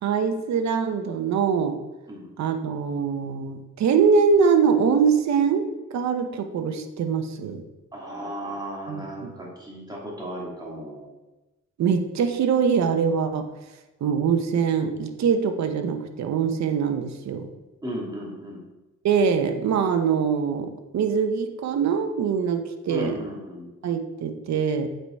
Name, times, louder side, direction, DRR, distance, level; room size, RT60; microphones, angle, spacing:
voice 1, 0.0-1.8 2.4-7.6 8.9-9.3 11.8-13.5 14.0-17.5 19.0-23.2 23.8-24.9, right 6 dB, 65° right, 7 dB, 0.9 m, -23 dB
voice 2, 7.9-11.1 17.8-18.6 22.9-23.7, equal, 15° right, -3 dB, 2.5 m, -35 dB
7.9 x 4.9 x 4.5 m, 1.1 s
cardioid pair, 90°, 30 cm